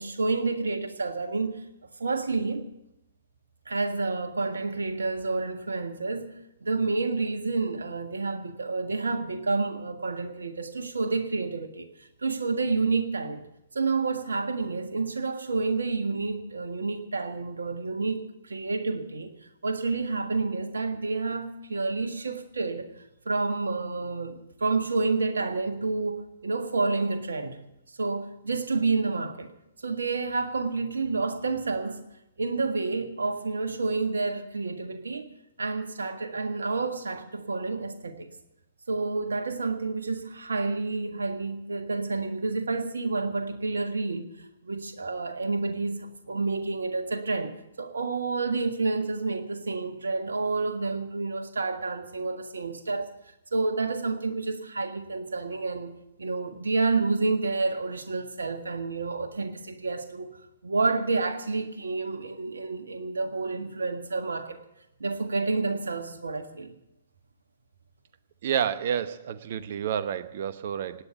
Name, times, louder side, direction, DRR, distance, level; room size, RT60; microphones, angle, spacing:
voice 1, 0.0-1.6 2.0-2.7 3.6-13.4 13.7-19.3 19.6-22.9 23.2-27.6 28.0-29.5 29.8-32.0 32.4-35.3 35.6-38.3 38.9-47.5 47.8-53.1 53.5-60.4 60.6-64.6 65.0-66.7, right 3 dB, 70° right, 7 dB, 1.7 m, -29 dB
voice 2, 68.4-71.0, right 8 dB, 45° right, 13 dB, 0.9 m, -29 dB
18.0 x 9.3 x 7.0 m, 0.87 s
figure-of-eight pair, 120°, 0 cm